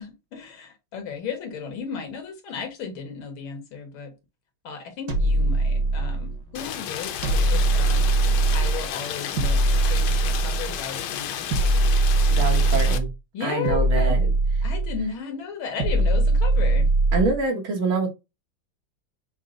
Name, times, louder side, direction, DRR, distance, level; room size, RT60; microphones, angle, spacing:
voice 1, 0.0-4.1 4.6-11.9 13.3-14.2 14.6-16.9, left 6 dB, 90° left, 2.0 m, -35 dB
sound 1, 5.1-6.4 7.2-8.9 9.4-10.8 11.5-13.1 13.7-15.1 15.8-17.4, right 2 dB, 60° right, 1.7 m, -21 dB
Rain, 6.5-13.0, left 10 dB, 70° left, 1.0 m, -32 dB
voice 2, 12.3-13.1 13.4-14.3 17.1-18.1, right 3 dB, 90° right, 2.2 m, -25 dB
6.4 x 2.1 x 3.7 m
omnidirectional pair, 2.1 m